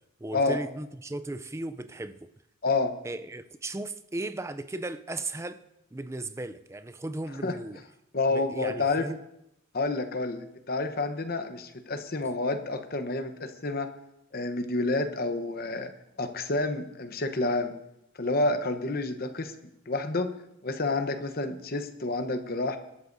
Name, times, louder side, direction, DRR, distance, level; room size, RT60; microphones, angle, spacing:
voice 1, 0.2-2.3 3.0-5.6 5.9-7.8 8.3-9.2, right 2 dB, 15° right, 0.4 m, -36 dB
voice 2, 2.6-2.9 7.4-7.6 8.1-9.1 9.7-13.9 14.3-15.9 16.2-17.7 18.2-19.5 19.9-20.3 20.6-22.8, left 2 dB, 45° left, 0.9 m, -29 dB
20.0 x 12.5 x 2.7 m
head